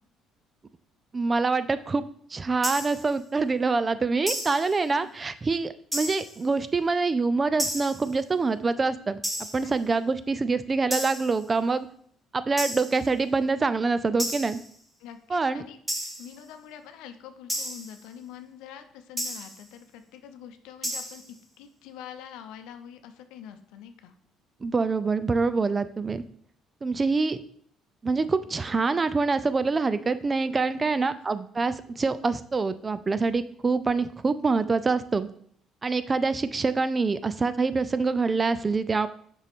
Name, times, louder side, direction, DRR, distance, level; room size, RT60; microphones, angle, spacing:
voice 1, 1.1-2.0 2.3-9.2 9.5-11.9 12.3-14.6 15.3-15.6 24.6-26.2 26.8-27.4 28.0-35.3 35.8-39.1, right 4 dB, 25° right, 14 dB, 0.4 m, -25 dB
sound 1, 2.6-3.1 4.3-4.8 5.9-6.4 7.6-8.1 9.2-9.7 10.9-11.4 12.6-13.1 14.2-14.7 15.9-16.4 17.5-18.0 19.2-19.6 20.8-21.3, equal, 5° right, 1.4 m, -32 dB
voice 2, 15.0-15.8 16.0-21.2 21.6-24.1 30.7-31.1, left 9 dB, 85° left, 8 dB, 0.6 m, -45 dB
6.4 x 5.4 x 3.6 m, 0.62 s
cardioid pair, 95°, 0 cm